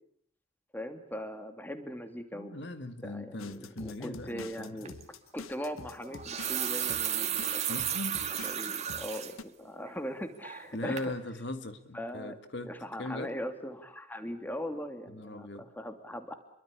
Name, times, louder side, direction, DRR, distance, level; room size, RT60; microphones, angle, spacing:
voice 1, 0.7-2.6 3.0-4.9 5.3-7.8 8.4-11.1 11.9-12.4 12.6-16.3, equal, 10° left, 8 dB, 2.6 m, -40 dB
voice 2, 2.3-4.9 7.7-8.2 10.7-12.7 13.0-13.3 15.1-15.7, left 2 dB, 55° left, 10 dB, 1.9 m, -39 dB
sound 1, 3.4-9.4, left 4 dB, 80° left, 1.1 m, -47 dB
sound 2, 4.8-5.0 6.0-9.3 9.8-9.9 10.4-10.7 11.0-11.1, right 10 dB, 30° right, 2.4 m, -33 dB
28.5 x 23.5 x 8.5 m, 0.66 s
head